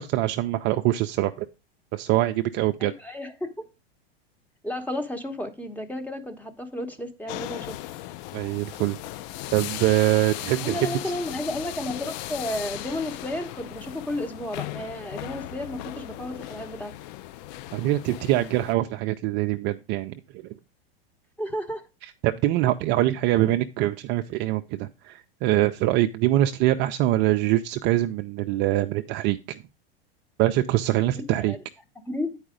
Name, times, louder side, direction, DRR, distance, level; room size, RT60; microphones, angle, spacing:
voice 1, 0.0-1.5 1.9-2.9 8.3-9.0 9.5-10.9 17.7-20.1 20.4-20.5 22.2-29.6 30.4-31.5, right 15 dB, 40° right, 0.4 m, -24 dB
voice 2, 2.8-3.7 4.6-7.7 10.6-16.9 21.4-21.8 31.1-31.6 32.1-32.4, left 1 dB, 5° left, 0.9 m, -32 dB
sound 1, 7.3-18.7, left 15 dB, 45° left, 0.4 m, -37 dB
8.8 x 4.8 x 5.0 m
hypercardioid pair, 120°, 30 cm